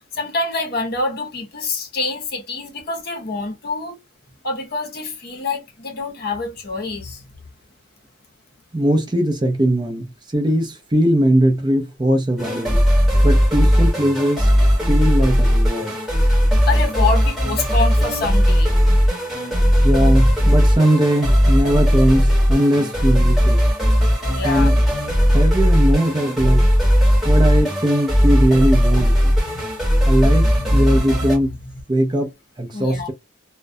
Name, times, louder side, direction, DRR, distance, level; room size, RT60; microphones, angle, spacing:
voice 1, 0.1-4.0 4.4-7.2 16.7-18.7 24.3-24.8 29.3-29.6 30.6-31.6 32.7-33.1, left 3 dB, 50° left, 0.7 m, -26 dB
voice 2, 8.7-10.1 10.3-12.8 13.2-14.5 14.9-16.0 19.8-23.6 24.4-24.8 25.3-26.7 27.2-29.3 30.1-31.6 31.9-32.3 32.6-33.1, right 1 dB, 20° right, 0.5 m, -19 dB
sound 1, 12.4-31.4, equal, ahead, 1.1 m, -17 dB
2.2 x 2.1 x 2.6 m
head